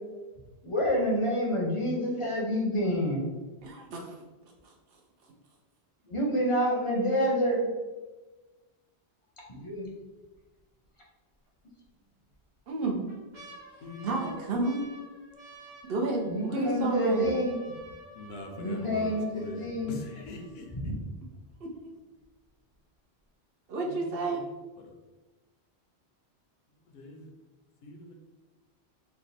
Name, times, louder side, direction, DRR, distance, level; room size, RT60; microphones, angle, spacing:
voice 1, 0.6-3.2 6.0-7.7 9.5-10.1 16.2-17.7 18.6-20.0 20.7-21.0, equal, 35° left, -2 dB, 0.6 m, -28 dB
voice 2, 3.6-4.2 4.6-4.7 12.7-13.1 14.0-14.9 15.9-17.4 21.6-21.7 23.7-24.4, right 3 dB, 65° right, 1 dB, 0.8 m, -31 dB
sound 1, 9.9-10.4 10.8-10.9 11.8-12.4 12.8-20.8 21.5-21.6 21.8-22.2 22.7-22.8, right 1 dB, 85° right, 1.5 m, -51 dB
voice 3, 13.8-14.5 18.1-20.9 23.8-24.9 26.7-27.3 27.8-28.1, left 2 dB, 75° left, 2 dB, 0.8 m, -44 dB
3.2 x 2.1 x 4.0 m, 1.2 s
omnidirectional pair, 1.1 m